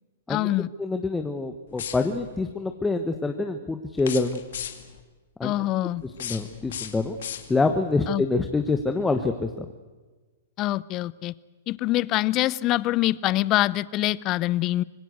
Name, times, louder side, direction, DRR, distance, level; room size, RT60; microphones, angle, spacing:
voice 1, 0.3-0.7 5.4-6.0 8.1-8.2 10.6-11.3 11.7-14.8, left 16 dB, 35° left, 21 dB, 0.6 m, -24 dB
voice 2, 0.8-4.4 5.4-5.5 6.2-7.2 7.5-9.5, left 3 dB, 10° left, 6 dB, 1.2 m, -26 dB
sound 1, 1.7-2.4 4.0-5.0 6.0-7.8, left 9 dB, 70° left, 2.2 m, -37 dB
25.5 x 19.0 x 8.0 m, 1.3 s
hypercardioid pair, 130°, 0 cm